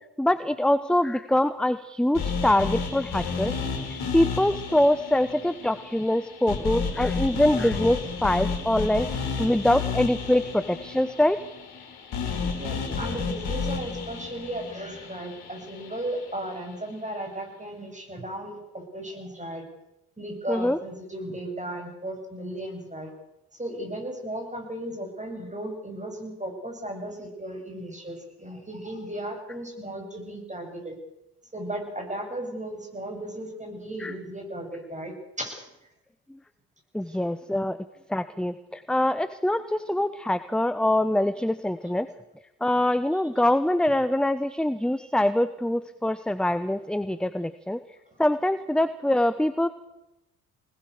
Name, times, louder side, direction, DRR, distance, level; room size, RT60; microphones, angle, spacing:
voice 1, 0.2-3.6 3.9-11.4 20.5-20.8 34.0-34.1 36.9-37.8 38.1-42.1 42.6-47.8 48.2-49.7, left 1 dB, ahead, 13 dB, 1.0 m, -24 dB
sound 1, 2.2-16.3, left 5 dB, 55° left, 4.1 m, -32 dB
voice 2, 12.6-19.6 20.2-23.1 23.5-30.9 31.5-35.6 37.1-37.2, right 1 dB, 15° right, 3 dB, 8.0 m, -35 dB
24.0 x 20.0 x 6.7 m, 0.89 s
hypercardioid pair, 45°, 45 cm